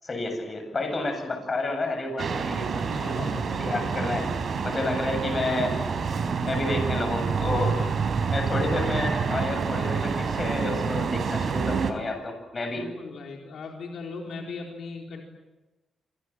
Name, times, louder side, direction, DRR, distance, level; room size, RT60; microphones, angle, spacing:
voice 1, 0.0-4.2 4.6-6.1 6.4-7.8 8.3-12.9, left 2 dB, 30° left, 6 dB, 7.9 m, -30 dB
sound 1, 2.2-11.9, right 5 dB, 50° right, 4.0 m, -27 dB
voice 2, 2.7-3.5 7.5-7.9 12.7-15.2, left 4 dB, 70° left, 1 dB, 4.1 m, -39 dB
28.5 x 26.5 x 7.5 m, 1.1 s
cardioid pair, 125°, 0 cm